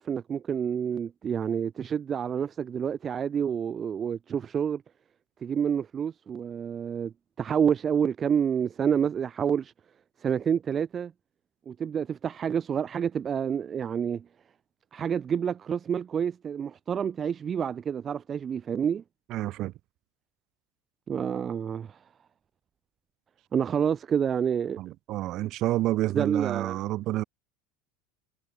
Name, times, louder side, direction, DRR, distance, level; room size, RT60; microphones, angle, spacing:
voice 1, 0.0-4.8 5.4-9.7 10.2-11.1 11.7-14.3 14.9-19.0 21.1-22.0 23.5-24.8 26.1-26.8, right 8 dB, 30° right, 0.4 m, -28 dB
voice 2, 19.3-19.7 24.8-27.2, right 16 dB, 55° right, 1.3 m, -29 dB
supercardioid pair, 105°, 0 cm